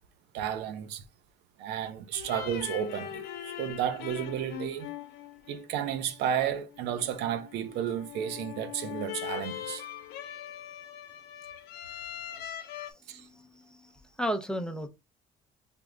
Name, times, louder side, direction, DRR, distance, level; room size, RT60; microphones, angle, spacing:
voice 1, 0.3-1.0 1.6-4.9 5.5-9.8 13.1-13.3, right 9 dB, 90° right, 0.5 m, -32 dB
sound 1, 2.1-12.9, left 11 dB, 70° left, 0.6 m, -41 dB
voice 2, 13.0-14.9, equal, 5° left, 0.5 m, -35 dB
3.4 x 2.0 x 3.7 m
cardioid pair, 110°, 17 cm